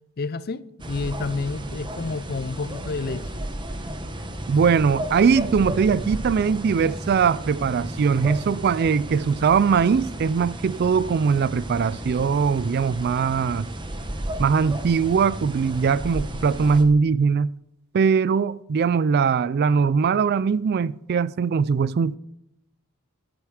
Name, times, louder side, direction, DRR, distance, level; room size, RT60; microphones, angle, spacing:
voice 1, 0.2-3.4, left 3 dB, 45° left, 0.5 m, -30 dB
sound 1, 0.8-16.8, right 1 dB, 20° right, 1.0 m, -34 dB
voice 2, 4.5-13.7 14.4-17.5 17.9-22.2, right 6 dB, 45° right, 0.3 m, -21 dB
13.0 x 7.8 x 4.8 m
head